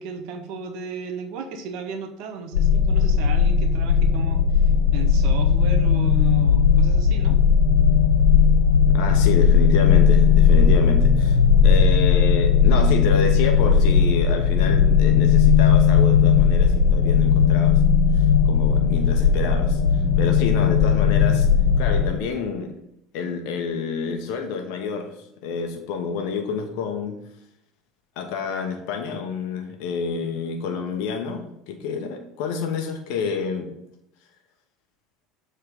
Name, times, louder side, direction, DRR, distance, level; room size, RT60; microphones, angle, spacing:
voice 1, 0.0-7.4, right 6 dB, 60° right, 6 dB, 0.9 m, -35 dB
sound 1, 2.5-22.1, left 6 dB, 85° left, 1.4 m, -17 dB
voice 2, 8.9-17.8 18.1-21.5 21.8-22.7 23.1-27.2 28.2-33.7, left 5 dB, 65° left, 4 dB, 0.9 m, -28 dB
7.0 x 3.7 x 5.1 m, 0.77 s
hypercardioid pair, 75°, 0 cm